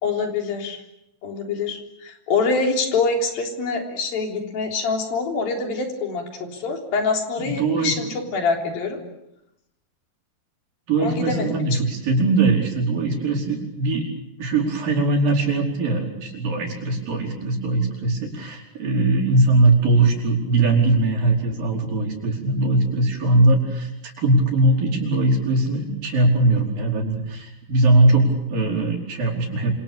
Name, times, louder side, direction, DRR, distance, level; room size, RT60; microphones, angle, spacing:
voice 1, 0.0-0.8 1.2-9.0 11.0-11.6, left 4 dB, 90° left, 2 dB, 5.5 m, -25 dB
voice 2, 7.4-7.9 10.9-14.0 14.4-29.7, right 2 dB, 75° right, 1 dB, 6.6 m, -20 dB
27.5 x 27.0 x 7.1 m, 0.85 s
omnidirectional pair, 4.0 m